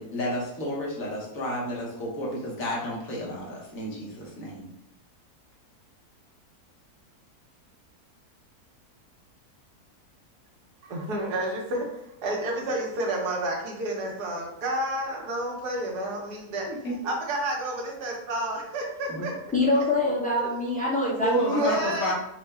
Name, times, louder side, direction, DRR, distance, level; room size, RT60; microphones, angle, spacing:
voice 1, 0.0-4.7 16.7-17.0 19.1-19.3 21.2-22.1, equal, 60° left, -4 dB, 1.4 m, -31 dB
voice 2, 10.8-11.9 12.2-16.7 17.0-19.3 20.4-20.5 21.4-22.1, right 1 dB, 85° right, -1 dB, 1.5 m, -30 dB
voice 3, 19.5-21.9, left 2 dB, 5° left, -6 dB, 0.7 m, -25 dB
4.4 x 2.1 x 3.4 m, 0.80 s
omnidirectional pair, 1.7 m